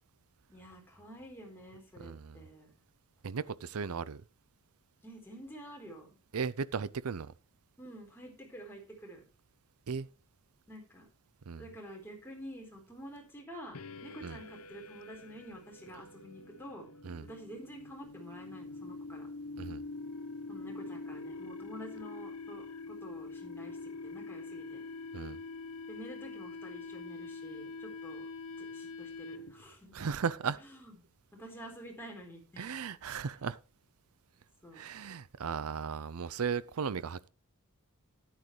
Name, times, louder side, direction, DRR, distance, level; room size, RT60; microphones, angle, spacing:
voice 1, 0.5-2.7 5.0-6.2 7.8-9.2 10.7-11.1 11.6-16.9 17.2-19.3 20.5-24.8 25.9-28.2 28.6-30.0 30.6-31.0 31.3-32.7 34.6-34.9, equal, 10° left, 4.0 m, -49 dB
voice 2, 2.0-2.4 3.2-4.2 6.3-7.3 9.9-10.1 11.5-11.6 14.2-14.4 17.0-17.3 19.6-19.8 25.1-25.4 29.9-30.6 32.6-33.6 34.7-37.3, right 6 dB, 80° right, 0.5 m, -36 dB
sound 1, 13.7-29.7, left 3 dB, 85° left, 0.9 m, -45 dB
13.0 x 10.0 x 3.3 m
head